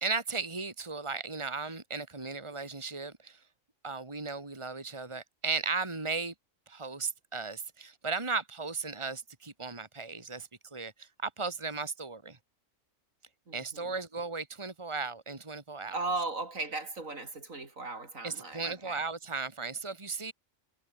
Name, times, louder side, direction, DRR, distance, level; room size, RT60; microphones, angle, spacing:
voice 1, 0.0-3.4 3.8-6.3 6.7-12.4 13.5-16.0 18.2-20.3, right 4 dB, 20° right, 2.5 m, -36 dB
voice 2, 13.5-13.9 15.9-19.0, right 3 dB, 75° right, 4.1 m, -37 dB
omnidirectional pair, 1.4 m